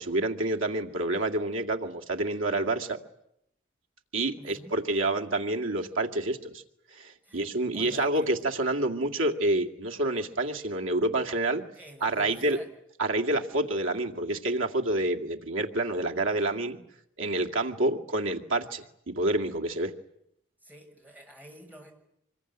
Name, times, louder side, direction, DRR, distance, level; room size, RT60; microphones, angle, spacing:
voice 1, 0.0-3.0 4.1-6.6 6.9-11.6 12.0-12.6 13.0-16.8 17.2-19.9, right 2 dB, 80° right, 2 dB, 2.2 m, -28 dB
voice 2, 4.4-4.7 7.2-8.3 11.7-12.7 20.6-21.9, equal, 10° right, 0 dB, 6.9 m, -49 dB
26.5 x 22.0 x 9.9 m, 0.76 s
head